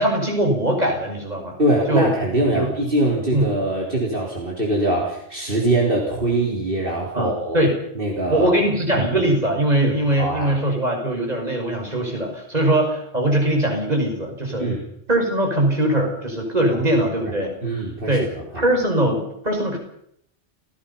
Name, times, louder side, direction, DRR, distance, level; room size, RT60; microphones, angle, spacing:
voice 1, 0.0-1.5 1.9-2.1 2.5-2.7 3.3-3.5 7.1-7.7 8.3-14.7 15.1-17.5 18.1-18.2 18.6-19.8, right 1 dB, 35° right, 1 dB, 5.9 m, -21 dB
voice 2, 1.6-7.6 8.0-8.5 8.9-9.1 9.8-10.5 14.6-14.8 17.0-17.1 17.6-18.6, right 1 dB, 50° right, -2 dB, 4.2 m, -23 dB
30.0 x 17.5 x 5.6 m, 0.73 s
omnidirectional pair, 1.2 m